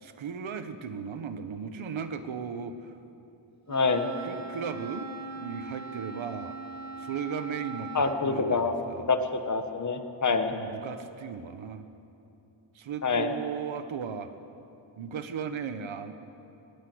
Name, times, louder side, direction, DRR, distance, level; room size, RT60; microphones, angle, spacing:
voice 1, 0.0-2.9 4.2-5.1 5.4-6.6 7.0-9.1 10.5-11.9 12.7-14.3 15.0-16.1, right 6 dB, 85° right, 9 dB, 1.3 m, -36 dB
voice 2, 3.7-4.1 7.9-8.8 9.1-10.5 13.0-13.3, left 4 dB, 40° left, 7 dB, 1.5 m, -26 dB
Wind instrument woodwind instrument, 3.7-8.3, right 4 dB, 35° right, 1.6 m, -40 dB
21.5 x 20.5 x 8.0 m, 2.8 s
wide cardioid pair, 155°, 46 cm